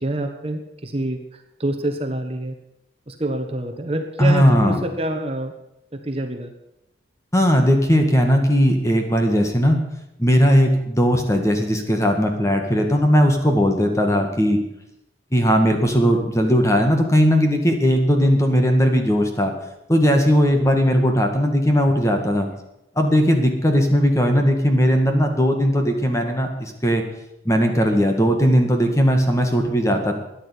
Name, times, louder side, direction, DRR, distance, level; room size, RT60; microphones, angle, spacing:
voice 1, 0.0-2.5 3.1-5.5 5.9-6.5, right 1 dB, 30° right, 5 dB, 1.3 m, -27 dB
voice 2, 4.2-4.8 7.3-9.8 10.2-14.6 15.3-19.5 19.9-22.5 22.9-27.0 27.4-30.2, equal, 15° left, 4 dB, 1.8 m, -18 dB
13.5 x 10.0 x 8.4 m, 0.86 s
head